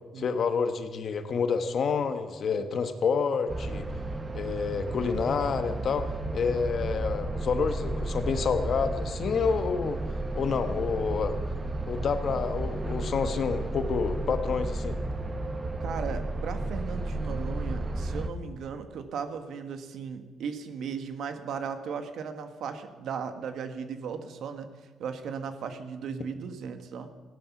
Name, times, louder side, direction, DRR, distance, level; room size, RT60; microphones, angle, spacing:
voice 1, 0.2-3.9 4.3-6.1 6.3-10.0 10.3-11.4 11.9-15.0, left 5 dB, 55° left, 8 dB, 1.3 m, -28 dB
sound 1, 3.5-18.3, right 2 dB, 25° right, 1.1 m, -33 dB
voice 2, 15.8-24.7 25.0-27.1, right 6 dB, 70° right, 8 dB, 1.4 m, -36 dB
16.0 x 11.5 x 6.0 m, 1.4 s
cardioid pair, 90°, 0 cm